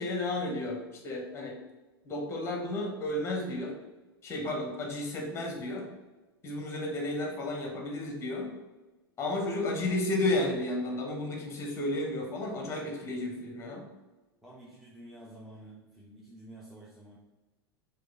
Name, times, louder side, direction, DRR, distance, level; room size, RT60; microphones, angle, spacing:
voice 1, 0.0-1.6 2.0-3.8 4.2-5.9 6.4-8.5 9.2-13.8, left 1 dB, 20° left, 1 dB, 1.0 m, -32 dB
voice 2, 14.4-17.2, right 1 dB, ahead, -6 dB, 0.6 m, -50 dB
4.6 x 2.4 x 3.6 m, 1.2 s
figure-of-eight pair, 85°, 13 cm